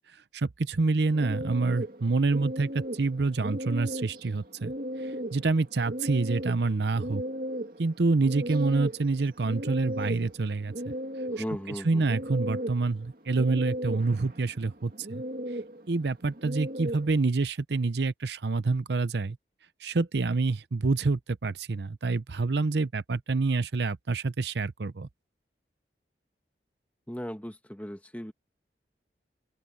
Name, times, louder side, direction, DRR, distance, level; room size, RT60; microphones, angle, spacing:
voice 1, 0.3-4.7 5.0-7.2 7.8-10.7 11.8-15.2 15.9-19.4 19.8-25.1, right 3 dB, 75° right, 0.7 m, -27 dB
sound 1, 1.1-17.2, equal, 55° right, 2.4 m, -37 dB
voice 2, 11.3-12.1 27.1-28.3, equal, 10° left, 1.4 m, -37 dB
head